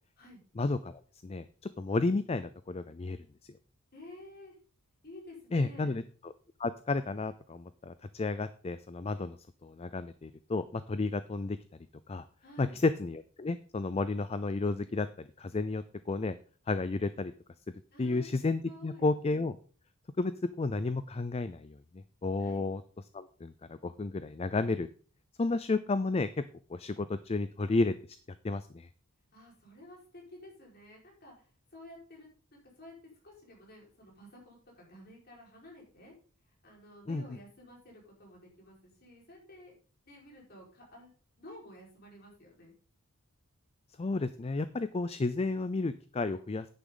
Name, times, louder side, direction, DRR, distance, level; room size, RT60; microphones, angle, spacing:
voice 1, 0.6-1.5 1.8-3.6 5.5-6.3 6.6-9.4 9.6-11.6 12.1-12.2 12.6-16.4 16.7-17.3 18.0-19.6 20.2-20.3 20.6-22.8 23.1-24.9 25.4-26.4 26.7-27.9 28.4-28.9 37.1-37.2 44.0-46.7, left 3 dB, 30° left, 13 dB, 0.4 m, -32 dB
voice 2, 3.9-4.6 5.0-6.0 12.4-12.8 17.9-19.1 22.4-22.7 29.3-31.5 31.7-32.9 33.2-36.1 36.6-39.8 40.0-41.1 41.4-42.7, left 1 dB, 45° left, -2 dB, 4.8 m, -52 dB
10.0 x 9.3 x 3.9 m, 0.40 s
head